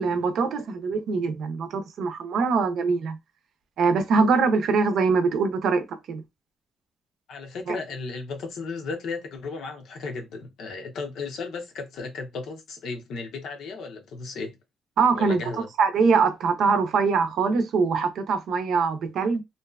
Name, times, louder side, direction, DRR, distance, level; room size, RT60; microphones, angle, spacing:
voice 1, 0.0-3.2 3.8-6.2 7.7-7.8 15.0-15.4 15.8-19.4, right 4 dB, 70° right, 0.6 m, -23 dB
voice 2, 7.3-14.6 15.1-15.7, left 4 dB, 75° left, 0.7 m, -35 dB
2.6 x 2.3 x 2.3 m
cardioid pair, 90°, 0 cm